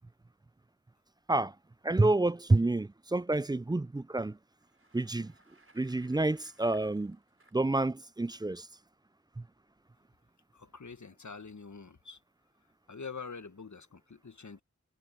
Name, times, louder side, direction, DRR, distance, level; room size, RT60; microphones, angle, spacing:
voice 1, 1.8-4.4 4.9-5.3 5.7-7.2 7.5-8.7 9.4-9.5, right 2 dB, 15° right, 0.3 m, -28 dB
Bicycle, 4.5-7.8, right 2 dB, 45° right, 4.8 m, -63 dB
voice 2, 10.5-12.2 12.9-14.6, left 5 dB, 70° left, 1.3 m, -45 dB
wide cardioid pair, 45°, 30 cm